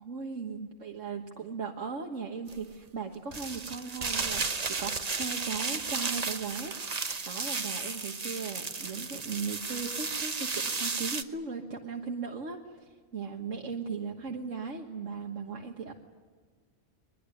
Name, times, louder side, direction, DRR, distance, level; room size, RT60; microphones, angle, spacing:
voice 1, 0.0-6.7 7.3-15.9, right 5 dB, 90° right, 2 dB, 1.8 m, -38 dB
sound 1, 2.5-2.6 3.3-11.2, right 4 dB, 35° right, 1.0 m, -34 dB
23.0 x 21.5 x 9.8 m, 1.5 s
omnidirectional pair, 1.3 m